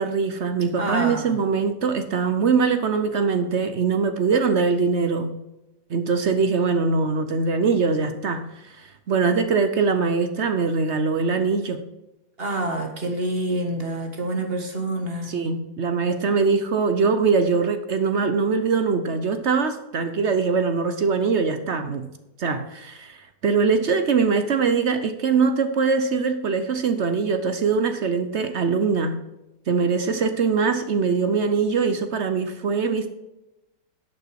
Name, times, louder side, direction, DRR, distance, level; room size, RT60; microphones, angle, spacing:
voice 1, 0.0-5.4 5.9-11.8 15.2-22.1 22.4-29.2 29.7-33.1, right 5 dB, 60° right, 9 dB, 0.7 m, -22 dB
voice 2, 0.8-1.3 12.4-15.3, right 1 dB, 35° right, 4 dB, 1.6 m, -27 dB
11.0 x 6.7 x 4.7 m, 0.95 s
omnidirectional pair, 2.1 m